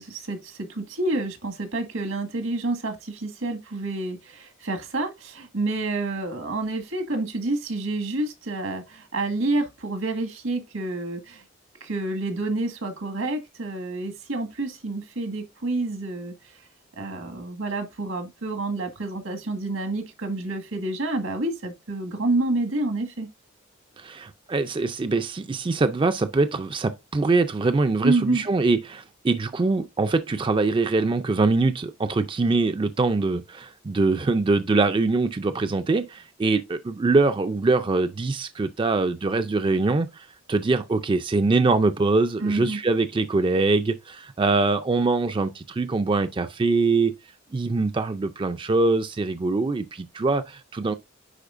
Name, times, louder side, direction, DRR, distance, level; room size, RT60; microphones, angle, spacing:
voice 1, 0.0-11.4 11.8-16.6 17.0-23.3 28.0-28.5 42.4-42.8, right 2 dB, 85° right, 1.8 m, -28 dB
voice 2, 24.0-47.1 47.5-50.9, right 3 dB, 25° right, 0.4 m, -23 dB
10.0 x 4.2 x 2.5 m
head